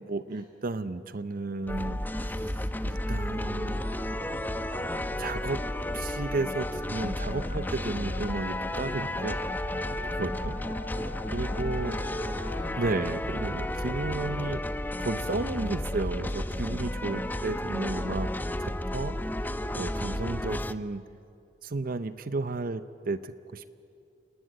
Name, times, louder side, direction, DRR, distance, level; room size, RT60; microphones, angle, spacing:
voice 1, 0.1-2.5 2.8-3.8 4.7-5.6 5.9-9.4 9.9-10.6 11.3-12.0 12.8-14.6 15.0-18.3 18.6-19.2 19.8-21.0 21.6-23.7, right 3 dB, 55° right, 13 dB, 0.7 m, -33 dB
sound 1, 1.7-20.7, left 1 dB, 10° left, 0.6 m, -32 dB
sound 2, 3.4-17.4, right 1 dB, 85° right, 2.4 m, -49 dB
Wind instrument woodwind instrument, 6.9-13.0, left 7 dB, 65° left, 0.8 m, -44 dB
voice 2, 10.0-10.6 11.9-12.8 14.1-14.4 18.1-18.6, equal, 25° right, 0 dB, 6.3 m, -51 dB
29.0 x 19.0 x 7.8 m, 2.6 s
head